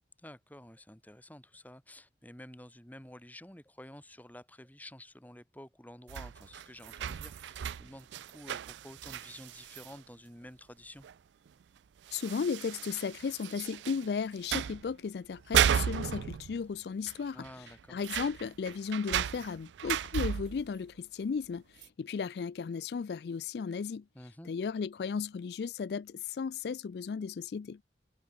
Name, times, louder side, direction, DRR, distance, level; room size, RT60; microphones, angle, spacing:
voice 1, 0.2-11.1 17.3-18.0 24.1-24.5, left 1 dB, 10° left, 3.1 m, -51 dB
sound 1, 6.1-10.0 11.0-11.1 11.5-11.6 12.1-14.1 14.4-14.9 15.3-16.8 17.1-17.2 17.4-20.7 21.8-21.9, right 9 dB, 80° right, 0.3 m, -34 dB
voice 2, 12.1-24.0 24.5-27.8, left 5 dB, 60° left, 0.4 m, -35 dB
head